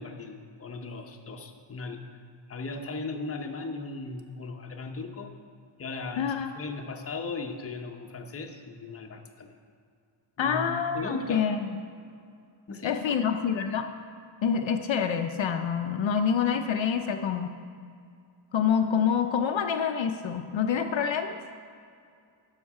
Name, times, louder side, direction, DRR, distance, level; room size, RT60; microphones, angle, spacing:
voice 1, 0.0-2.0 2.5-5.3 5.8-9.5 10.4-11.5 12.7-13.3, left 3 dB, 30° left, 3 dB, 0.7 m, -37 dB
voice 2, 6.2-6.5 10.4-11.8 12.8-13.9 14.4-17.6 18.5-21.4, left 7 dB, 65° left, 5 dB, 0.6 m, -27 dB
11.5 x 6.5 x 4.8 m, 2.3 s
wide cardioid pair, 180°, 50 cm